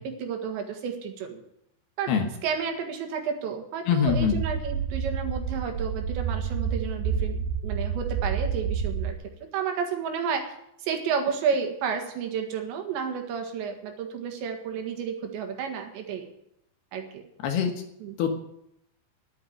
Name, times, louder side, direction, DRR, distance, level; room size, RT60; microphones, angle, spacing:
voice 1, 0.0-1.4 2.0-2.1 2.4-9.2 9.5-10.5 10.8-16.3 16.9-17.2 18.0-18.2, right 6 dB, 75° right, 5 dB, 3.9 m, -31 dB
voice 2, 3.9-4.4 17.4-17.7 18.2-18.3, left 7 dB, 70° left, 5 dB, 3.0 m, -23 dB
sound 1, 4.1-9.1, right 6 dB, 60° right, 3.5 m, -29 dB
11.5 x 8.9 x 9.4 m, 0.77 s
omnidirectional pair, 5.2 m